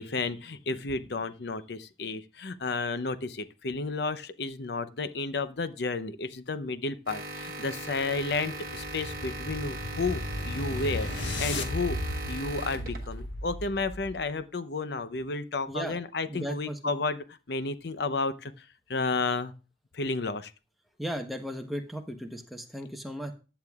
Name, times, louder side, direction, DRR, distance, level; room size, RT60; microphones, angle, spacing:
voice 1, 0.0-19.5 19.9-20.5, left 3 dB, 65° left, 13 dB, 0.7 m, -32 dB
sound 1, 7.1-13.2, right 2 dB, 50° right, 1.2 m, -39 dB
sound 2, 8.0-14.3, left 1 dB, 90° left, 1.3 m, -35 dB
voice 2, 15.7-16.0 16.3-16.9 21.0-23.3, equal, ahead, 3 dB, 1.0 m, -36 dB
14.5 x 8.9 x 2.4 m, 0.32 s
head